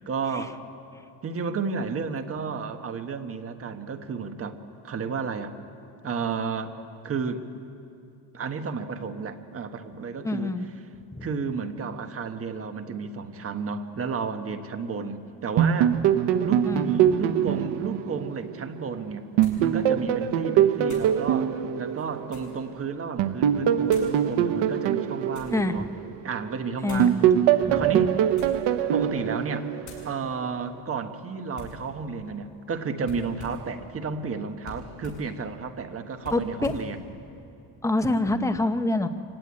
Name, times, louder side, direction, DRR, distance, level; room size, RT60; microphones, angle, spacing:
voice 1, 0.1-0.6 1.2-4.6 4.8-5.5 6.0-6.8 7.0-7.5 8.3-10.5 11.2-15.9 16.4-19.2 19.6-25.8 26.2-27.3 27.7-28.4 28.9-29.7 30.0-37.0, right 5 dB, 35° right, 7 dB, 1.4 m, -32 dB
voice 2, 10.2-10.7 11.1-11.3 16.7-16.9 25.5-25.8 26.8-27.1 27.6-27.9 36.3-36.7 37.8-39.1, left 2 dB, 5° left, 7 dB, 0.8 m, -26 dB
sound 1, 15.6-18.9 19.4-22.6 23.2-26.5 27.0-30.2, right 10 dB, 85° right, 1.1 m, -23 dB
sound 2, 18.3-18.4 19.4-19.7 20.8-21.2 21.9-22.6 23.9-24.2 24.9-25.6 26.8-27.1 28.2-28.7 29.1-29.4 29.8-30.1 31.5-31.8 33.0-33.7 34.6-35.3 36.2-36.9, left 3 dB, 45° left, 7.2 m, -45 dB
25.0 x 17.0 x 9.7 m, 2.6 s
cardioid pair, 145°, 42 cm